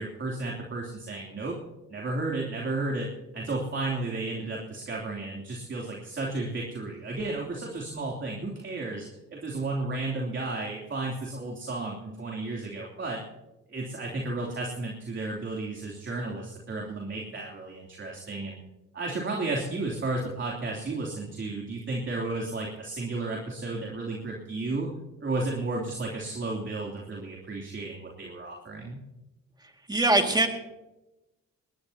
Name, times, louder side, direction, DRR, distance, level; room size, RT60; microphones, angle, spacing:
voice 1, 0.0-1.6 1.9-3.1 3.3-13.2 13.7-18.6 18.9-24.9 25.2-29.0, right 2 dB, 40° right, -2 dB, 3.1 m, -33 dB
voice 2, 29.9-30.5, right 2 dB, 15° right, 4 dB, 2.2 m, -22 dB
20.5 x 19.5 x 2.9 m, 0.99 s
cardioid pair, 90°, 30 cm